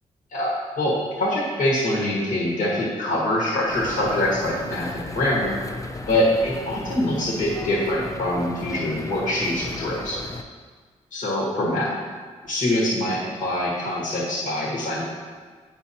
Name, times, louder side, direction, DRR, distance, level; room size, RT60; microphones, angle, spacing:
voice 1, 0.3-5.6 6.0-10.2 11.1-11.9 12.4-15.0, left 1 dB, 70° left, -4 dB, 1.6 m, -24 dB
sound 1, 3.7-10.4, left 2 dB, 25° left, 0.6 m, -36 dB
9.3 x 4.4 x 2.8 m, 1.5 s
supercardioid pair, 55°, 14 cm